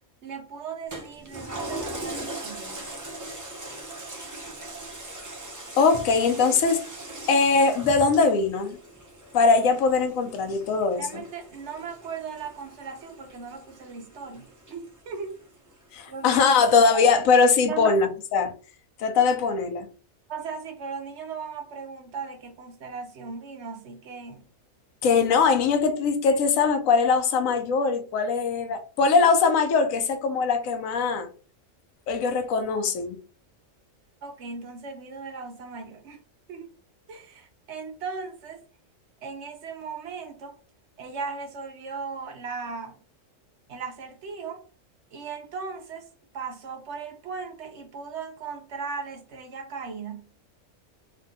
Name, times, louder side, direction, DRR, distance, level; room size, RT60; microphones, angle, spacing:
voice 1, 0.2-2.9 11.0-15.4 16.1-16.4 17.7-17.9 20.3-24.4 34.2-36.2 36.5-36.7 37.1-38.6 39.2-40.6 41.0-43.0 43.7-44.6 45.1-46.1 46.3-50.3, right 5 dB, 65° right, 0.9 m, -37 dB
Toilet flush, 0.9-15.7 16.2-16.3, right 1 dB, 25° right, 0.4 m, -40 dB
voice 2, 5.8-6.8 7.3-8.8 9.3-11.1 15.9-18.5 19.0-19.9 25.0-31.3 32.1-33.2, left 4 dB, 80° left, 1.0 m, -21 dB
3.3 x 2.2 x 2.5 m
omnidirectional pair, 1.4 m